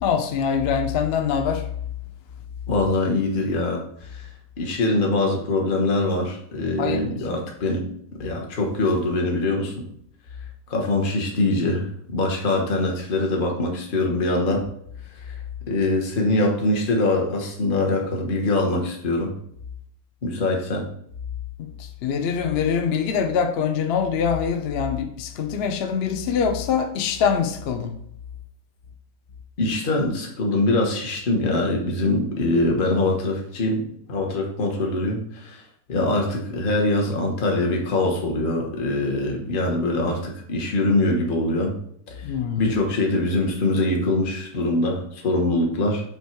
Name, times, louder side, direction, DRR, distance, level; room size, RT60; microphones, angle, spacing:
voice 1, 0.0-1.7 6.8-7.1 21.6-28.0 42.2-42.7, left 7 dB, 60° left, 0.6 m, -24 dB
voice 2, 2.7-4.2 4.6-7.8 8.2-9.7 10.7-14.6 15.2-15.3 15.7-19.3 20.2-20.8 29.6-33.8 34.1-35.6 35.9-41.7 42.6-46.0, left 2 dB, 35° left, 1.2 m, -23 dB
8.3 x 3.3 x 4.5 m
omnidirectional pair, 1.9 m